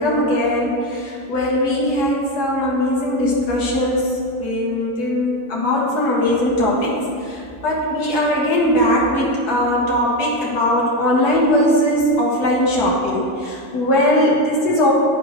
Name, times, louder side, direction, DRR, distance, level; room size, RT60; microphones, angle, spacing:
voice 1, 0.0-6.9 7.2-14.9, left 1 dB, 85° left, -5 dB, 1.8 m, -19 dB
11.5 x 4.8 x 3.2 m, 2.3 s
omnidirectional pair, 1.7 m